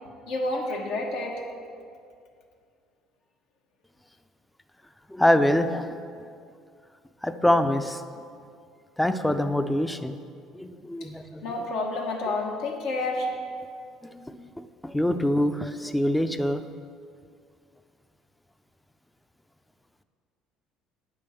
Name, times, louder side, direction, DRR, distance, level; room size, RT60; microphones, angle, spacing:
voice 1, 0.3-1.4 11.0-11.1 11.4-13.3, left 2 dB, 80° left, -1 dB, 1.0 m, -29 dB
voice 2, 5.1-5.9 7.2-8.0 9.0-10.2 10.5-11.4 14.0-16.6, left 1 dB, 5° left, 9 dB, 0.4 m, -25 dB
8.6 x 3.5 x 6.8 m, 2.3 s
supercardioid pair, 85°, 0 cm